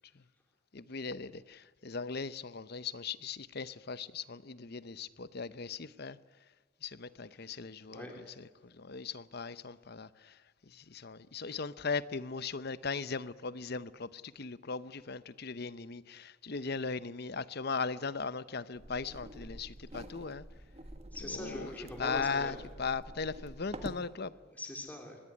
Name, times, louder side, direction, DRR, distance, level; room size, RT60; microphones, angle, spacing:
voice 1, 0.7-6.2 6.8-8.1 8.6-10.4 10.7-20.4 21.3-21.7 22.0-24.3, left 5 dB, 50° left, 0.8 m, -38 dB
voice 2, 7.8-8.1 21.1-22.6 24.5-25.2, left 1 dB, 10° left, 3.1 m, -43 dB
sound 1, 18.7-24.1, right 1 dB, 30° right, 1.6 m, -47 dB
24.0 x 20.0 x 9.9 m
head